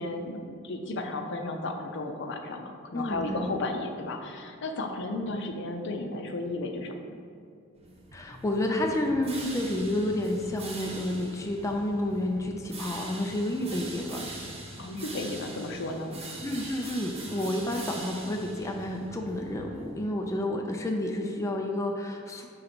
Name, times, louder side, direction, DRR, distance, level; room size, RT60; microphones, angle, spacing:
voice 1, 0.0-7.0 14.8-16.1, left 2 dB, 60° left, 4 dB, 0.6 m, -34 dB
voice 2, 2.9-3.5 8.1-14.3 16.4-22.5, left 1 dB, 15° left, 1 dB, 0.4 m, -30 dB
sound 1, 7.7-20.1, right 2 dB, 30° right, 1.0 m, -43 dB
5.2 x 3.9 x 5.9 m, 2.4 s
head